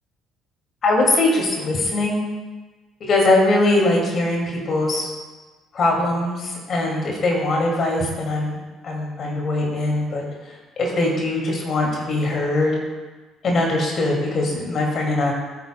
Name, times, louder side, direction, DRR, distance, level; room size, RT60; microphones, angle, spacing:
voice 1, 0.8-2.2 3.0-5.1 5.7-10.3 10.8-12.8 13.4-15.3, left 2 dB, 50° left, -1 dB, 2.5 m, -21 dB
14.5 x 8.8 x 2.3 m, 1.3 s
hypercardioid pair, 50°, 0 cm